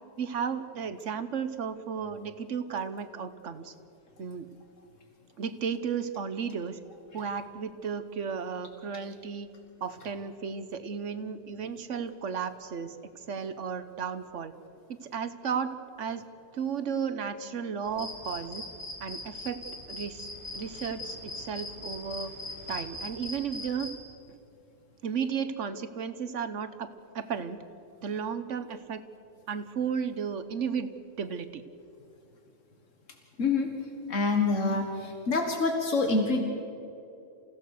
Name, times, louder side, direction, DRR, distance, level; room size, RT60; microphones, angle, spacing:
voice 1, 0.2-3.7 4.2-4.5 5.4-6.8 7.1-9.5 9.8-14.5 14.9-15.7 16.0-16.2 16.5-18.6 19.0-19.6 19.9-20.3 20.5-22.3 22.7-23.9 25.0-26.9 27.1-27.6 28.0-29.0 29.5-31.6, right 6 dB, 75° right, 11 dB, 1.3 m, -34 dB
sound 1, 17.8-23.9, left 2 dB, 55° left, 4.4 m, -40 dB
voice 2, 33.4-33.7 34.1-36.4, left 3 dB, 90° left, 3 dB, 2.0 m, -26 dB
28.5 x 16.5 x 6.5 m, 2.8 s
omnidirectional pair, 1.3 m